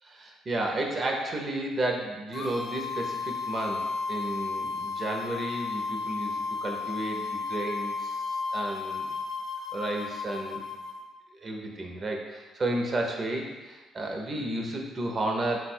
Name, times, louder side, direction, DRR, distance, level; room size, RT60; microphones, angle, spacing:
voice 1, 0.0-9.1 9.7-10.6 11.3-15.7, right 1 dB, 35° right, 1 dB, 0.7 m, -32 dB
sound 1, 2.3-11.0, left 4 dB, 50° left, 0.6 m, -33 dB
4.1 x 2.2 x 4.3 m, 1.2 s
cardioid pair, 95°, 0 cm